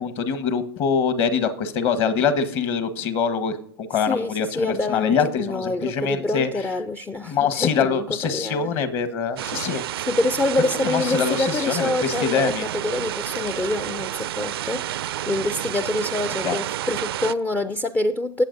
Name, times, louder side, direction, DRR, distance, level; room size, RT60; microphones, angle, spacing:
voice 1, 0.0-6.7 7.2-9.8 10.7-12.7 16.4-16.6, left 6 dB, 45° left, 1.3 m, -24 dB
voice 2, 4.0-8.7 10.1-14.9 15.3-18.4, left 2 dB, 10° left, 0.4 m, -26 dB
sound 1, 9.4-17.3, right 13 dB, 75° right, 0.4 m, -30 dB
19.5 x 7.6 x 2.6 m
hypercardioid pair, 100°, 13 cm